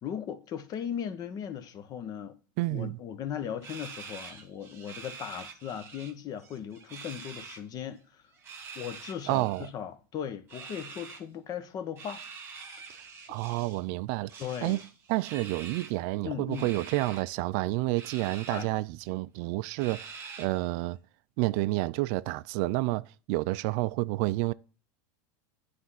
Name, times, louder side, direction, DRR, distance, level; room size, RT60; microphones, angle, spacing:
voice 1, 0.0-2.4 2.7-8.2 8.7-12.2 14.4-14.8 16.2-16.7 18.5-18.7, left 9 dB, 40° left, 0.9 m, -38 dB
voice 2, 2.6-3.0 9.3-9.7 12.9-14.8 15.1-21.0 21.4-24.5, right 20 dB, 60° right, 0.4 m, -30 dB
sound 1, 3.6-6.1 6.4-7.6 8.3-9.7 10.5-11.2 12.0-13.8 14.3-16.0 16.5-17.2 18.0-18.7 19.1-19.2 19.8-20.7, right 5 dB, 20° right, 1.5 m, -45 dB
9.4 x 3.4 x 5.6 m
supercardioid pair, 125°, 10 cm